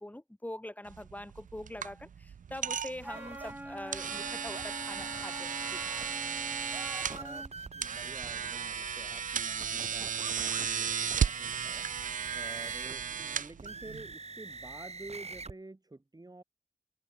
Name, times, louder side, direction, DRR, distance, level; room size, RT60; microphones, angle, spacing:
voice 1, 0.0-5.8, left 1 dB, 10° left, 4.6 m, -44 dB
sound 1, 0.9-14.1, right 7 dB, 75° right, 0.5 m, -35 dB
Wind instrument woodwind instrument, 3.0-7.5, right 1 dB, 15° right, 3.3 m, -45 dB
sound 2, 3.1-3.5 4.5-6.1 6.6-13.0 13.6-15.5, right 3 dB, 55° right, 5.3 m, -45 dB
voice 2, 7.1-7.5 7.7-10.9 11.1-16.4, right 2 dB, 30° right, 6.7 m, -50 dB
open air
wide cardioid pair, 75°, 13 cm